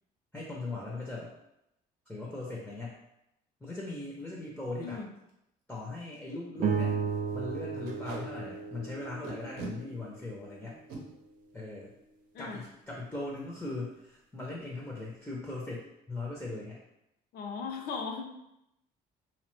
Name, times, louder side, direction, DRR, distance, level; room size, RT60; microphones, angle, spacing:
voice 1, 0.3-1.3 2.1-3.0 3.6-5.0 5.7-7.0 7.3-10.8 11.5-11.9 12.4-16.8, left 2 dB, 5° left, -3 dB, 0.5 m, -39 dB
Packing tape duct tape, 4.2-4.4 4.8-4.9 5.2-5.3 5.8-5.9 6.1-6.3 6.7-6.8 7.8-8.2 9.2-9.7 10.7-11.0 12.6-12.7 13.1-13.3 13.5-13.9, right 3 dB, 85° right, 0.7 m, -42 dB
sound 1, 6.6-11.1, right 6 dB, 55° right, 0.4 m, -35 dB
voice 2, 17.3-18.3, left 5 dB, 65° left, 3 dB, 0.4 m, -37 dB
2.7 x 2.0 x 3.0 m, 0.83 s
cardioid pair, 110°, 17 cm